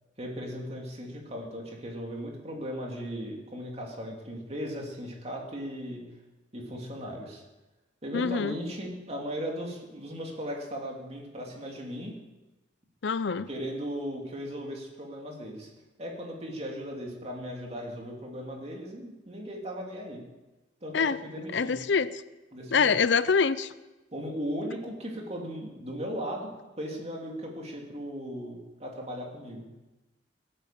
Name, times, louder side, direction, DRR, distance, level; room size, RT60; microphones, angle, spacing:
voice 1, 0.2-6.0 6.5-7.4 8.0-12.1 13.5-15.7 16.0-20.2 20.8-21.8 22.5-22.9 24.1-26.5 26.8-29.7, equal, 35° right, 0 dB, 3.0 m, -37 dB
voice 2, 8.1-8.5 13.0-13.5 20.9-21.2 21.5-22.1 22.7-23.7, left 5 dB, 75° left, 15 dB, 0.6 m, -25 dB
18.0 x 9.0 x 7.7 m, 1.1 s
head